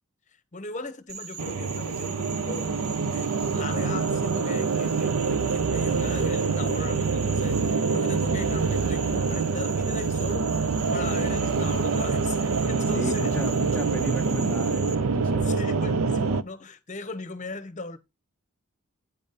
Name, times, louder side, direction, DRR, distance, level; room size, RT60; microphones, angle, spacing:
voice 1, 0.5-2.7 3.1-10.5 10.9-13.5 15.4-18.0, left 3 dB, 35° left, 0.8 m, -38 dB
Frog, 1.1-15.0, right 5 dB, 45° right, 1.0 m, -40 dB
sound 1, 1.4-16.4, right 4 dB, 75° right, 0.5 m, -26 dB
voice 2, 12.9-15.5, left 1 dB, 5° left, 0.5 m, -35 dB
9.0 x 5.1 x 4.1 m
head